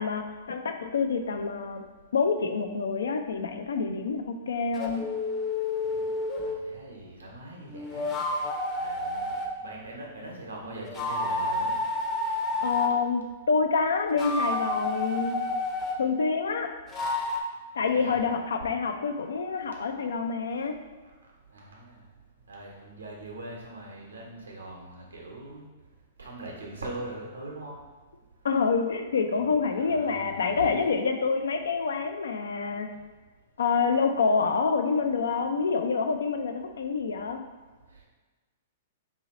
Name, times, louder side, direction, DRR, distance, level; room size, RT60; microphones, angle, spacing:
voice 1, 0.0-1.8 2.1-5.1 12.6-15.5 16.0-16.7 17.8-20.8 28.4-32.9 33.6-37.4, left 5 dB, 80° left, 6 dB, 0.4 m, -27 dB
sound 1, 4.7-6.6 7.7-9.5 10.9-12.9 14.0-16.0 16.9-17.4, left 2 dB, 20° left, 0.6 m, -30 dB
voice 2, 6.4-8.1 8.7-9.3 9.6-11.8 17.9-18.2 21.5-22.0 22.5-25.6 26.2-27.8 29.2-30.7, right 2 dB, 90° right, -1 dB, 0.9 m, -41 dB
2.9 x 2.8 x 4.0 m, 1.3 s
hypercardioid pair, 115°, 0 cm